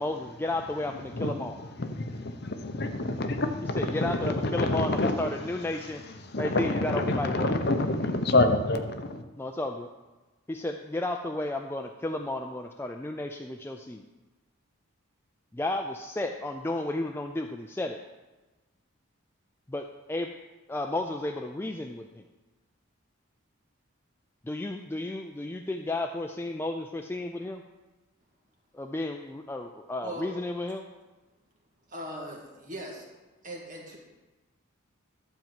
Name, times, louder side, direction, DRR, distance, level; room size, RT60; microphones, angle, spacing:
voice 1, 0.0-1.6 3.8-6.0 6.4-7.5 9.4-9.9 10.5-14.0 15.5-18.0 19.7-20.3 20.7-22.2 24.5-27.6 28.7-30.8, left 2 dB, 10° left, 4 dB, 0.3 m, -33 dB
voice 2, 0.9-5.3 5.6-9.2, left 2 dB, 50° left, 7 dB, 0.8 m, -28 dB
voice 3, 30.0-30.3 31.9-33.1 33.4-34.0, right 1 dB, 35° right, -1 dB, 1.7 m, -39 dB
11.5 x 4.6 x 7.5 m, 1.2 s
head